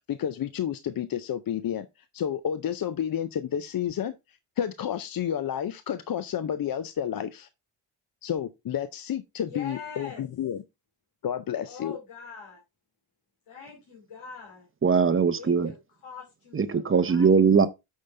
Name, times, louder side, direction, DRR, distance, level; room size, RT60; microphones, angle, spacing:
voice 1, 0.1-1.9 2.1-4.2 4.6-7.5 8.2-10.6 11.2-12.0, left 9 dB, 45° left, 0.5 m, -30 dB
voice 2, 9.5-10.2 11.6-12.6 13.5-14.7 15.4-15.8 16.0-17.4, left 5 dB, 85° left, 3.2 m, -43 dB
voice 3, 14.8-15.7 16.5-17.7, right 5 dB, 25° right, 0.6 m, -21 dB
8.8 x 5.6 x 3.2 m
wide cardioid pair, 165°, 50 cm